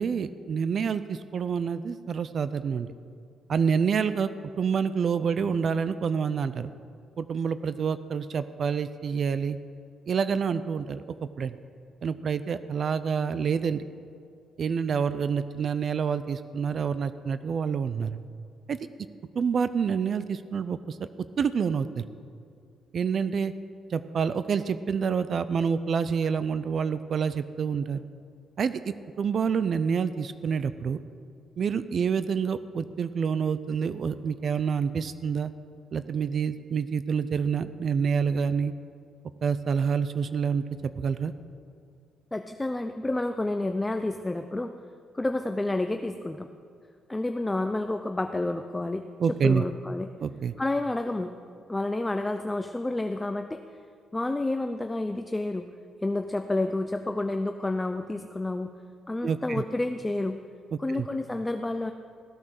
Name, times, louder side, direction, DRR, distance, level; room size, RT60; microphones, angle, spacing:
voice 1, 0.0-2.9 3.5-4.3 4.6-6.7 7.2-9.6 10.1-11.0 11.4-11.6 12.0-13.8 14.6-18.2 18.7-18.8 19.4-21.0 21.4-22.0 22.9-23.5 23.9-28.0 28.6-31.0 31.6-35.5 35.9-38.7 39.4-40.6 41.0-41.3 49.2-49.6 50.2-50.5 59.2-59.6 60.9-61.1, right 6 dB, 55° right, 13 dB, 0.5 m, -27 dB
voice 2, 42.3-44.7 45.1-46.5 47.1-49.1 49.4-50.1 50.6-51.3 51.7-53.6 54.1-55.7 56.0-58.7 59.1-60.4 60.8-61.9, left 2 dB, 15° left, 7 dB, 0.5 m, -29 dB
15.5 x 8.6 x 6.5 m, 2.3 s
cardioid pair, 90°, 0 cm